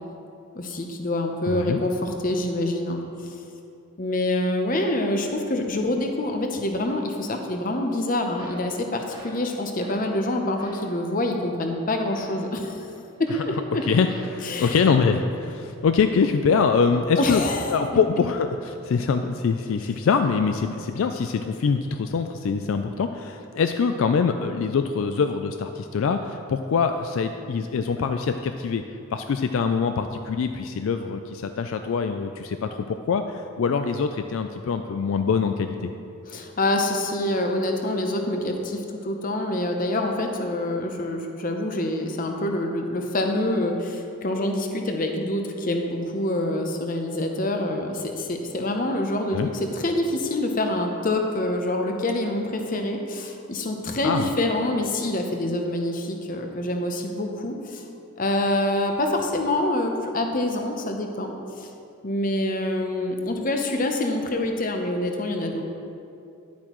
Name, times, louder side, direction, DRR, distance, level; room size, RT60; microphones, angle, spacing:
voice 1, 0.5-3.3 4.0-12.8 13.2-13.8 14.4-14.8 17.2-17.8 36.3-57.8 58.2-61.7 62.0-65.6, left 1 dB, 40° left, 3 dB, 0.7 m, -26 dB
voice 2, 1.5-1.8 13.9-17.4 17.7-28.8 29.1-35.9 49.3-49.5 54.0-54.3, left 5 dB, 65° left, 7 dB, 0.3 m, -24 dB
sound 1, 8.3-8.7 9.1-9.4 9.8-10.2 10.6-10.9 12.1-15.1, right 1 dB, 20° right, 1.3 m, -44 dB
11.0 x 8.4 x 3.0 m, 2.6 s
head